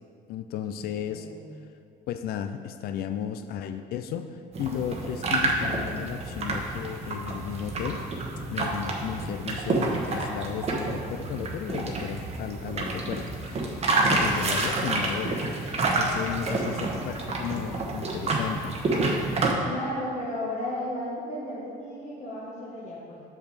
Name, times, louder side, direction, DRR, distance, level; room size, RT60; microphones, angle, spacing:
voice 1, 0.3-1.3 2.1-8.0 8.5-15.3 16.0-18.8, left 9 dB, 65° left, 9 dB, 0.4 m, -34 dB
voice 2, 0.8-1.6 14.0-14.9 16.4-17.3 19.6-23.2, left 1 dB, 45° left, -5 dB, 1.3 m, -35 dB
sound 1, 4.5-19.5, right 2 dB, 40° right, 1.1 m, -28 dB
6.6 x 5.7 x 4.1 m, 2.2 s
cardioid pair, 110°, 17 cm